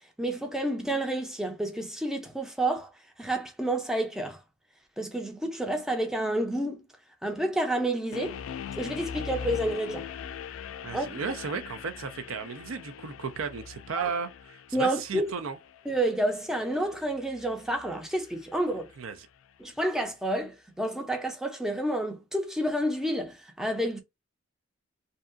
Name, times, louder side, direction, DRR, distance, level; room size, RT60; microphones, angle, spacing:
voice 1, 0.2-2.9 3.2-4.4 5.0-6.9 7.2-8.4 8.8-10.1 10.9-11.1 13.9-14.1 14.7-15.3 15.9-18.9 19.6-24.0, right 1 dB, 5° right, 0.5 m, -29 dB
sound 1, 8.1-19.2, left 7 dB, 80° left, 0.3 m, -42 dB
voice 2, 10.8-15.6 19.0-19.2, right 5 dB, 85° right, 0.5 m, -34 dB
2.6 x 2.3 x 2.4 m
head